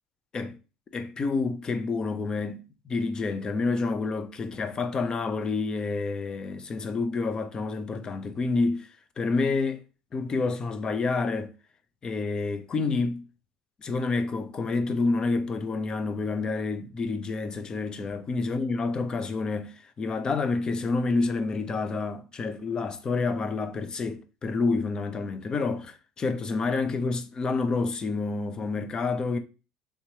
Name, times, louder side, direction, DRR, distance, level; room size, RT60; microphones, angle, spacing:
voice 1, 0.9-8.9 9.2-9.8 10.1-11.5 12.0-13.2 13.8-29.4, left 3 dB, 30° left, 0.5 m, -28 dB
3.5 x 2.9 x 2.7 m
supercardioid pair, 90°, 2 cm